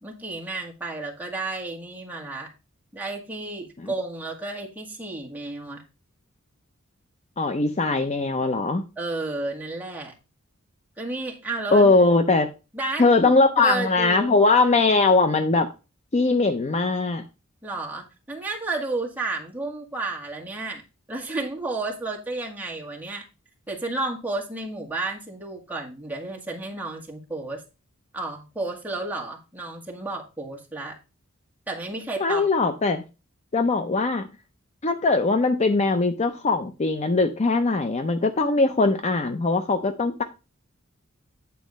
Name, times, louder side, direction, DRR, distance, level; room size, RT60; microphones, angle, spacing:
voice 1, 0.0-2.5 2.9-5.8 9.0-10.1 11.0-11.9 12.7-14.3 17.6-20.8 21.1-23.2 23.7-27.6 28.1-31.0 31.7-32.5, right 2 dB, 10° right, 1.9 m, -32 dB
voice 2, 7.4-8.8 11.7-12.5 13.0-15.7 16.1-17.2 32.2-33.0 33.5-34.2 34.8-40.2, left 3 dB, 30° left, 0.5 m, -21 dB
9.3 x 4.2 x 5.2 m
head